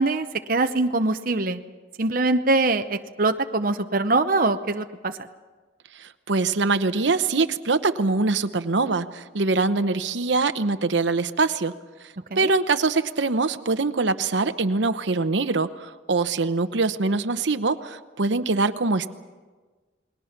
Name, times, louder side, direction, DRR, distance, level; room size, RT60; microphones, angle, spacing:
voice 1, 0.0-1.6 2.0-5.1 12.3-12.5, right 2 dB, 45° right, 7 dB, 0.7 m, -23 dB
voice 2, 6.0-11.7 12.4-19.1, right 3 dB, 75° right, 11 dB, 0.9 m, -23 dB
29.0 x 21.0 x 5.9 m, 1.3 s
head